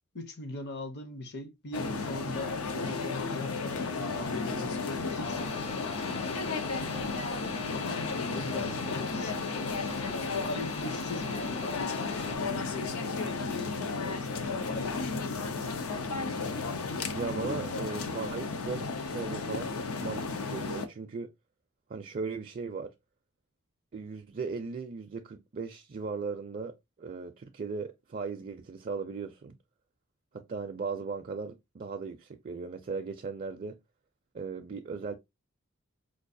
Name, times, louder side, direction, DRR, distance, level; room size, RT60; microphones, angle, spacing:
voice 1, 0.1-6.9 7.7-15.9, left 2 dB, 50° left, 0.7 m, -41 dB
sound 1, 1.7-20.9, left 4 dB, 90° left, 0.7 m, -34 dB
sound 2, 5.2-12.4, left 4 dB, 30° left, 0.4 m, -42 dB
voice 2, 17.1-21.3 21.9-22.9 23.9-29.6 30.3-33.8 34.3-35.1, right 4 dB, 40° right, 0.4 m, -37 dB
4.5 x 2.4 x 2.6 m
head